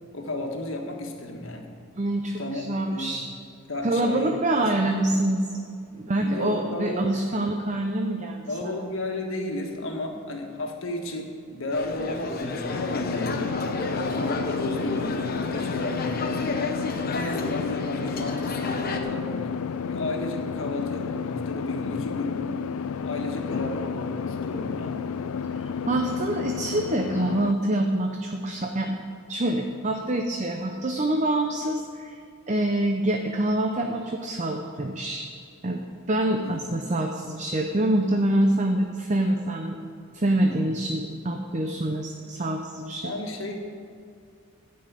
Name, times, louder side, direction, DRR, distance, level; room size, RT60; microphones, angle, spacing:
voice 1, 0.1-1.7 2.4-3.2 3.7-4.9 5.9-7.2 8.5-13.5 13.9-16.7 17.1-19.6 19.9-22.4 23.0-25.1 36.4-36.6 40.4-40.7 43.0-43.6, left 1 dB, 65° left, 2 dB, 1.5 m, -33 dB
voice 2, 1.9-3.3 3.8-5.4 6.0-8.7 25.5-29.0 29.3-32.1 32.5-35.3 35.6-35.8 36.1-39.8 40.1-43.1, right 1 dB, 35° right, 3 dB, 0.6 m, -26 dB
sound 1, 11.7-19.0, left 3 dB, 45° left, 0.9 m, -32 dB
sound 2, 12.7-27.5, left 6 dB, 85° left, 0.4 m, -31 dB
12.5 x 5.5 x 8.4 m, 2.4 s
head